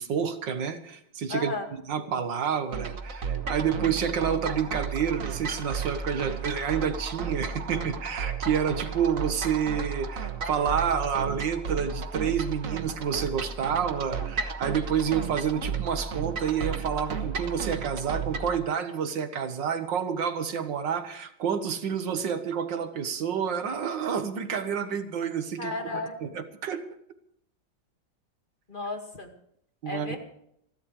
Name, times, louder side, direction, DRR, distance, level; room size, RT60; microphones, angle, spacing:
voice 1, 0.0-25.9 26.2-26.8 29.8-30.2, right 7 dB, 85° right, 9 dB, 2.0 m, -29 dB
voice 2, 1.3-1.6 25.6-26.1 28.7-29.3 29.9-30.2, left 2 dB, 30° left, 3 dB, 2.2 m, -33 dB
sound 1, 2.7-18.6, right 5 dB, 50° right, 1.5 m, -33 dB
29.0 x 11.5 x 3.3 m, 0.72 s
omnidirectional pair, 1.9 m